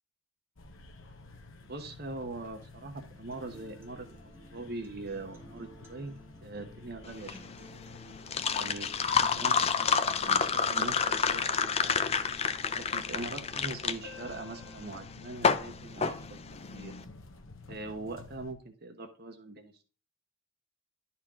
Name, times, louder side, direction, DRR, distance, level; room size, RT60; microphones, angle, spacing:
sound 1, 0.6-18.5, left 3 dB, 70° left, 1.0 m, -51 dB
voice 1, 1.7-7.5 8.5-12.0 12.8-16.4 16.7-16.9 17.7-19.8, right 2 dB, 50° right, 6 dB, 1.0 m, -42 dB
Acoustic guitar, 3.3-11.3, right 1 dB, 15° right, 2.3 m, -55 dB
sound 2, 7.1-16.9, left 6 dB, 30° left, 0.5 m, -29 dB
11.5 x 4.4 x 3.6 m, 0.37 s
head